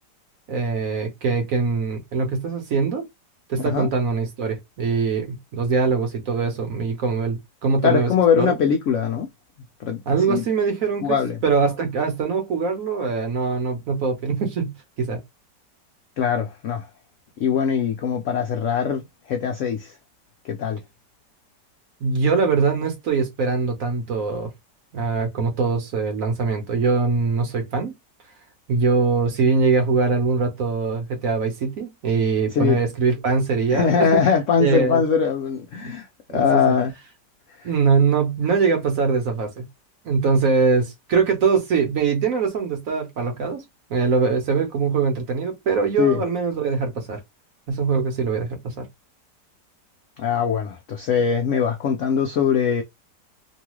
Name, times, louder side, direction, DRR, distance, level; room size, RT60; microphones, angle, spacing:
voice 1, 0.5-3.0 3.5-8.1 8.4-8.5 10.1-15.2 22.0-24.5 24.9-27.9 28.7-34.2 34.6-35.0 35.8-35.9 36.3-36.8 37.6-39.7 40.0-43.6 43.9-47.2 47.7-48.9, right 5 dB, 55° right, 1.1 m, -22 dB
voice 2, 3.6-3.9 7.8-9.3 9.8-10.0 10.3-10.4 11.0-11.4 16.2-16.9 17.4-19.9 20.4-20.8 32.5-32.8 33.7-36.1 36.3-36.9 37.6-37.7 46.0-46.2 50.2-52.8, left 7 dB, 85° left, 0.6 m, -21 dB
3.1 x 2.3 x 2.9 m
omnidirectional pair, 1.9 m